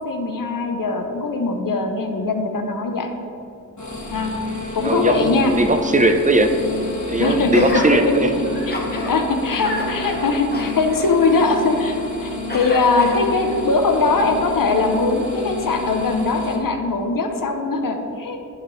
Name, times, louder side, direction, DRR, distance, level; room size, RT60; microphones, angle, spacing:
voice 1, 0.0-3.1 4.1-4.3 4.7-5.5 7.2-7.6 8.6-18.4, left 3 dB, 75° left, 4 dB, 0.7 m, -21 dB
sound 1, 3.8-16.6, left 2 dB, 60° left, 1.2 m, -30 dB
voice 2, 4.8-6.6 7.1-8.3, right 1 dB, 25° right, 6 dB, 0.6 m, -18 dB
Gasp, 7.5-7.9 8.4-9.1 9.5-12.0 12.5-13.6 14.2-14.3, left 1 dB, 30° left, 1.1 m, -30 dB
11.0 x 4.9 x 3.1 m, 2.6 s
wide cardioid pair, 65°, 33 cm